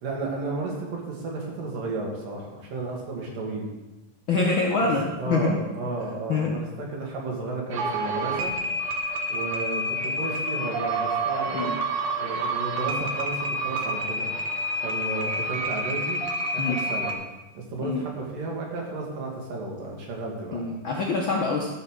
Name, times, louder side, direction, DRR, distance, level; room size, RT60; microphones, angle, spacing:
voice 1, 0.0-3.7 4.8-4.9 5.2-8.5 9.3-11.7 12.2-14.3 14.8-16.2 16.5-17.2 17.5-20.7, right 3 dB, 85° right, -1 dB, 3.9 m, -33 dB
voice 2, 4.3-5.6 6.3-6.6 11.5-11.7 16.6-16.8 17.8-18.0 20.5-21.7, left 3 dB, 70° left, -1 dB, 1.1 m, -25 dB
sound 1, 7.7-17.1, right 1 dB, 70° right, 2.4 m, -28 dB
13.5 x 5.6 x 6.5 m, 1.1 s
omnidirectional pair, 3.8 m